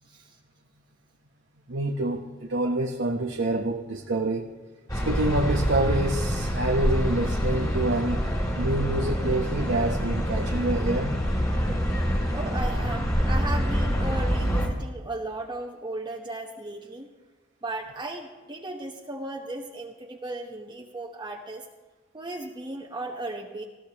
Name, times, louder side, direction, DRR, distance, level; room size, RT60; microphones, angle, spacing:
voice 1, 0.1-0.4 12.3-17.1 17.6-21.7 22.1-23.6, right 2 dB, 25° right, 0 dB, 1.1 m, -36 dB
voice 2, 1.7-4.5 4.9-8.3 8.6-11.1, right 2 dB, 80° right, 2 dB, 1.0 m, -27 dB
sound 1, 4.9-14.7, equal, 20° left, 2.6 m, -26 dB
20.0 x 15.5 x 2.9 m, 1.3 s
head